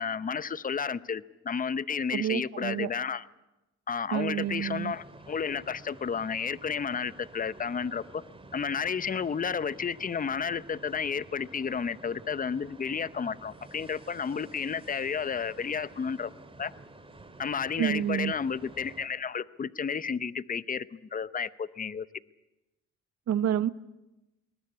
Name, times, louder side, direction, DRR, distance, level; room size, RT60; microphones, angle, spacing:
voice 1, 0.0-3.3 3.9-8.2 8.5-16.3 16.6-16.7 17.4-22.1, left 6 dB, 30° left, 0.7 m, -32 dB
voice 2, 2.1-2.9 4.1-4.9 17.8-18.3 23.3-23.7, right 10 dB, 60° right, 0.9 m, -28 dB
sound 1, 4.4-19.1, right 2 dB, 20° right, 2.3 m, -51 dB
21.0 x 19.5 x 9.7 m
cardioid pair, 90°, 30 cm